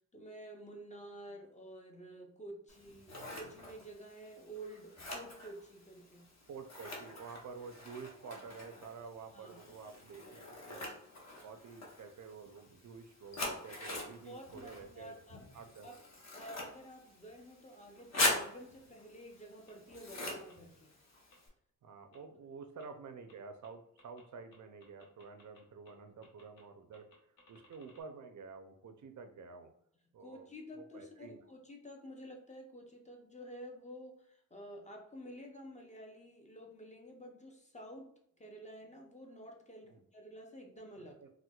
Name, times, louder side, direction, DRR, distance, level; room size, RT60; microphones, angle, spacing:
voice 1, 0.1-6.3 9.3-9.6 14.1-15.4 15.8-16.0 16.3-20.9 30.2-41.2, equal, 20° left, 1 dB, 0.5 m, -50 dB
Scissors, 2.7-21.5, left 2 dB, 50° left, 0.8 m, -43 dB
voice 2, 6.5-10.9 11.4-15.1 15.5-15.9 21.8-27.1 27.5-29.7 30.1-30.5 30.8-31.4 39.9-40.0 41.0-41.3, right 5 dB, 60° right, 7 dB, 0.4 m, -50 dB
sound 1, 19.7-19.8 20.5-20.6 21.3-21.4 22.1-22.2 22.8-22.9 23.3-23.4 23.6-23.7 24.0-24.2 24.5-25.6 25.8-25.9 26.2-26.6 26.9-28.0, left 3 dB, 80° left, 1.0 m, -62 dB
4.3 x 2.1 x 2.3 m, 0.72 s
wide cardioid pair, 115°, 33 cm